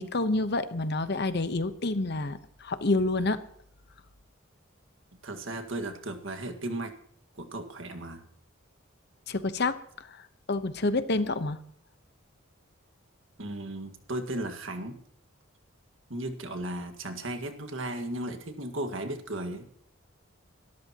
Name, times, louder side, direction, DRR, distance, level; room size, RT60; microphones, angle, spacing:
voice 1, 0.0-3.4 9.3-11.6, left 2 dB, 55° left, 11 dB, 1.0 m, -28 dB
voice 2, 5.2-6.9 7.4-8.2 13.4-15.0 16.1-19.7, right 1 dB, 70° right, 6 dB, 1.8 m, -35 dB
24.0 x 13.0 x 3.0 m, 0.62 s
head